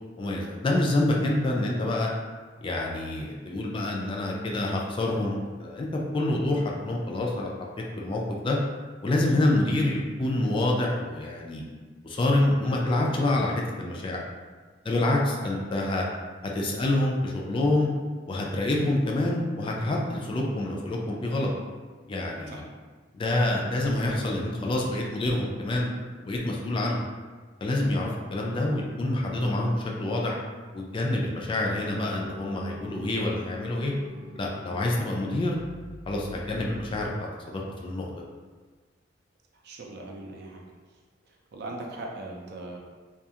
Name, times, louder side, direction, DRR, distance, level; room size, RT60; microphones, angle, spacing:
voice 1, 0.2-2.1 2.6-7.5 7.8-8.6 9.0-11.6 12.0-14.2 14.8-16.1 16.5-17.9 18.3-21.5 22.1-22.6 23.1-25.9 26.2-27.1 27.6-30.4 30.7-33.9 34.4-35.6 36.1-38.1, left 1 dB, 25° left, -2 dB, 0.3 m, -27 dB
sound 1, 32.0-37.1, equal, 80° right, 0.8 m, -45 dB
voice 2, 39.5-40.6 41.2-42.8, right 2 dB, 60° right, 0 dB, 0.4 m, -40 dB
2.4 x 2.4 x 2.7 m, 1.4 s
head